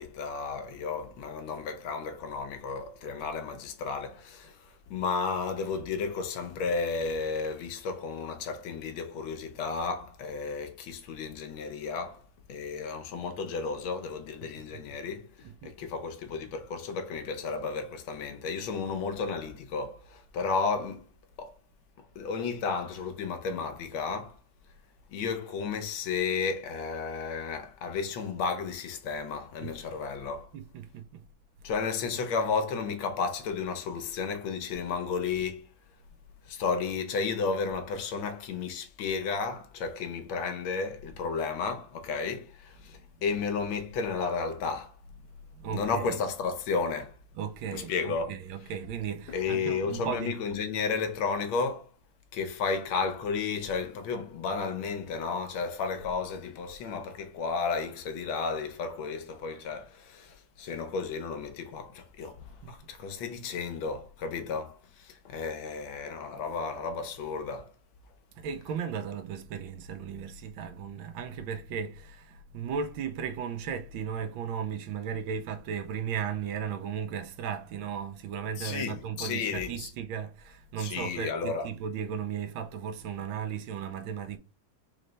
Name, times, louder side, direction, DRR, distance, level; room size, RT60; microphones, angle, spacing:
voice 1, 0.0-12.2 12.5-21.1 21.4-21.5 22.0-24.4 25.1-30.5 31.6-35.7 36.5-45.0 45.7-47.1 47.7-48.3 49.3-51.9 52.3-67.7 78.6-79.9 80.8-81.7, left 5 dB, 80° left, 1.6 m, -33 dB
voice 2, 30.5-31.2 31.7-31.8 42.7-43.4 45.1-46.2 47.3-50.3 62.6-62.7 68.3-84.4, right 7 dB, 80° right, 1.4 m, -36 dB
4.2 x 3.2 x 3.9 m
omnidirectional pair, 2.2 m